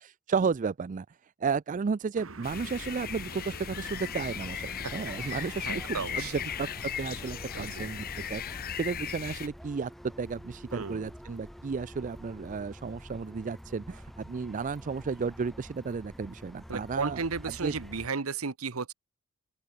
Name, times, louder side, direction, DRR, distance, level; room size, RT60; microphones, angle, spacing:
voice 1, 0.0-17.8, right 5 dB, 40° right, 0.4 m, -33 dB
Car passing by, 2.2-7.1, right 3 dB, 70° right, 1.8 m, -51 dB
sound 1, 2.4-9.5, left 8 dB, 45° left, 0.7 m, -37 dB
sound 2, 2.8-18.1, equal, ahead, 4.8 m, -48 dB
voice 2, 5.2-6.4 7.5-7.9 10.7-11.1 16.7-18.9, right 4 dB, 85° right, 1.1 m, -34 dB
open air
head